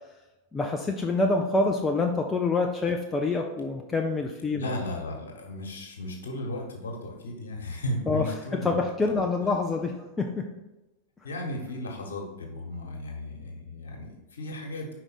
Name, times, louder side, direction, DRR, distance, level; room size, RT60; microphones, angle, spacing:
voice 1, 0.5-4.7 8.1-10.5, left 3 dB, 15° left, 1 dB, 0.5 m, -26 dB
voice 2, 4.5-9.2 11.2-15.0, left 1 dB, 65° left, 1 dB, 1.4 m, -35 dB
5.0 x 4.7 x 4.2 m, 1.0 s
figure-of-eight pair, 90°, 0 cm